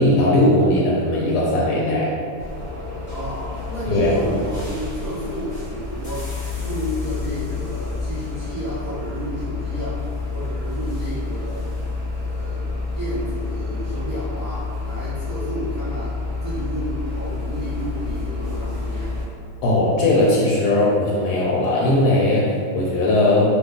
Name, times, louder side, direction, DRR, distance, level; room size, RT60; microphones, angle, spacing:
voice 1, 0.0-2.1 3.9-4.1 19.6-23.5, left 1 dB, 85° left, -5 dB, 1.1 m, -18 dB
sound 1, 2.4-19.2, left 3 dB, 35° left, 0.9 m, -29 dB
voice 2, 3.1-6.3 6.6-10.0 10.3-11.6 12.1-12.7 12.9-16.2 16.4-19.1, equal, 15° left, -12 dB, 1.1 m, -31 dB
2.6 x 2.4 x 3.6 m, 2.2 s
omnidirectional pair, 1.7 m